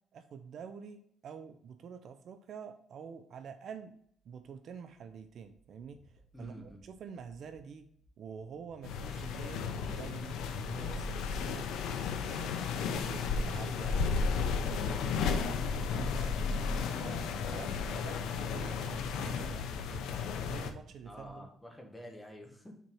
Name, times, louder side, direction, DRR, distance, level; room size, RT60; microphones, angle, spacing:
voice 1, 0.1-3.9 4.2-7.9 8.2-11.7 12.0-20.1 20.5-21.5, right 6 dB, 55° right, 9 dB, 0.6 m, -47 dB
sound 1, 4.1-21.3, right 3 dB, 25° left, 1.6 m, -60 dB
voice 2, 6.3-6.8 21.0-22.7, equal, 10° left, 1 dB, 1.5 m, -48 dB
sound 2, 8.8-20.7, left 5 dB, 90° left, 0.7 m, -34 dB
5.9 x 4.4 x 5.4 m, 0.67 s
cardioid pair, 145°, 0 cm